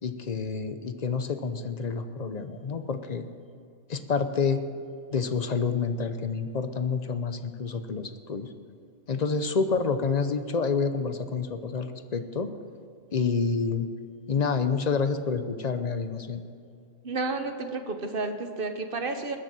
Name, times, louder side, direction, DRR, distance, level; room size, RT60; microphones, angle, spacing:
voice 1, 0.0-3.3 3.9-4.6 5.1-8.5 9.1-12.5 13.1-13.9 14.3-16.4, left 5 dB, 40° left, 9 dB, 0.8 m, -28 dB
voice 2, 17.0-19.4, right 3 dB, 45° right, 7 dB, 1.2 m, -31 dB
20.5 x 6.8 x 7.5 m, 2.5 s
omnidirectional pair, 1.3 m